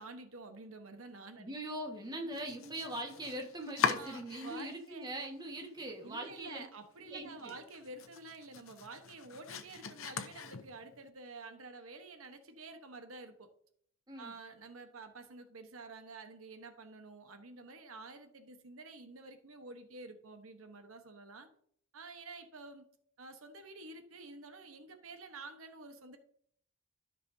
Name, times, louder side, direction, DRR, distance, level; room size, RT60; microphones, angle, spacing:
voice 1, 0.0-1.5 2.2-2.7 3.9-5.1 6.0-13.5 14.2-21.5 21.9-22.9 23.2-26.2, right 3 dB, 85° right, 7 dB, 1.1 m, -50 dB
voice 2, 1.4-6.6 7.1-7.5 14.1-14.3, right 1 dB, 20° right, 1 dB, 1.5 m, -41 dB
Domestic sounds home sounds, 2.3-4.9 5.2-5.9 6.3-6.4 6.8-6.9 7.3-11.0, left 6 dB, 80° left, 0.8 m, -40 dB
13.0 x 6.0 x 2.7 m, 0.63 s
head